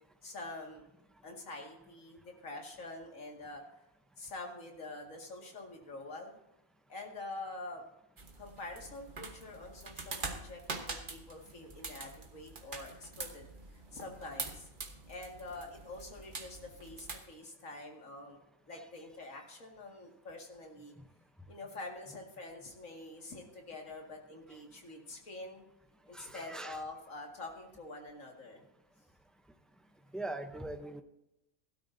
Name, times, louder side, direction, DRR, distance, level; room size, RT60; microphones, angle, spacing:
voice 1, 0.2-0.8 1.2-3.6 4.2-6.4 6.9-7.8 8.4-14.7 15.1-18.4 18.7-21.0 21.5-25.7 26.1-28.6, left 2 dB, 70° left, 1 dB, 2.4 m, -46 dB
sound 1, 8.2-17.2, right 3 dB, 40° right, 1.3 m, -45 dB
voice 2, 26.1-26.8 30.1-31.0, right 2 dB, ahead, 6 dB, 0.4 m, -41 dB
16.5 x 12.5 x 2.7 m, 0.90 s
omnidirectional pair, 1.4 m